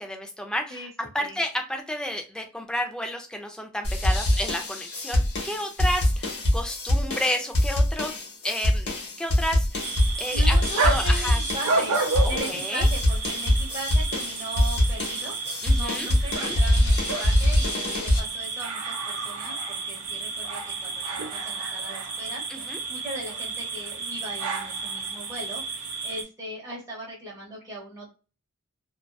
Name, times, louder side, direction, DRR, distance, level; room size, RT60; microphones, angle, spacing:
voice 1, 0.0-8.1 8.4-8.9 9.2-10.6 10.8-11.4 12.2-12.9 15.6-16.6 22.5-22.8, left 1 dB, 5° left, 4 dB, 0.4 m, -31 dB
voice 2, 0.7-1.4 10.3-12.0 12.3-15.4 15.7-22.4 22.9-25.6 26.0-28.1, right 1 dB, 15° right, -5 dB, 0.8 m, -38 dB
sound 1, 3.8-18.2, left 1 dB, 50° left, 0.9 m, -24 dB
sound 2, 9.8-26.2, right 4 dB, 80° right, 0.6 m, -31 dB
2.5 x 2.3 x 2.2 m, 0.33 s
head